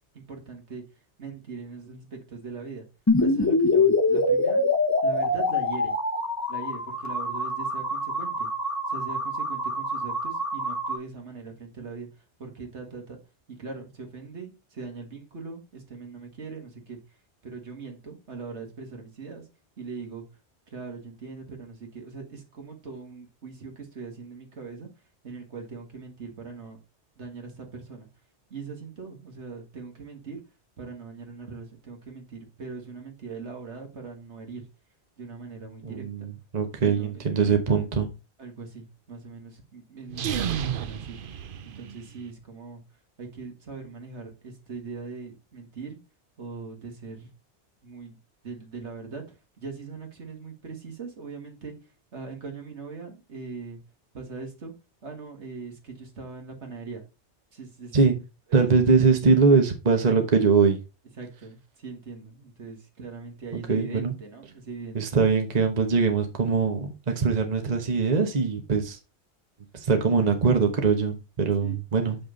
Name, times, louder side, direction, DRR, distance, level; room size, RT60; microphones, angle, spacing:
voice 1, 0.1-0.8 1.2-2.8 3.2-4.7 5.0-6.0 6.5-8.5 8.9-13.2 13.5-17.2 17.4-19.5 19.8-20.2 20.7-24.9 25.2-26.8 27.2-28.1 28.5-30.4 30.8-34.7 35.2-36.3 36.9-37.8 38.4-41.2 41.8-42.8 43.2-46.0 46.4-47.3 47.8-48.2 48.4-53.8 54.1-54.7 55.0-57.0 57.5-58.0 58.5-58.7 60.0-60.2 61.2-65.0 71.6-71.8, right 4 dB, 75° right, 3 dB, 2.1 m, -41 dB
sound 1, 3.1-11.0, left 2 dB, 15° left, 0.8 m, -25 dB
voice 2, 35.8-36.3 36.5-38.1 57.9-58.2 58.5-60.8 63.7-64.1 64.9-69.0 69.7-72.2, right 5 dB, 40° right, 5 dB, 1.2 m, -22 dB
sound 2, 40.1-42.2, right 8 dB, 55° right, 0.7 m, -31 dB
7.0 x 6.0 x 3.9 m, 0.28 s
omnidirectional pair, 1.2 m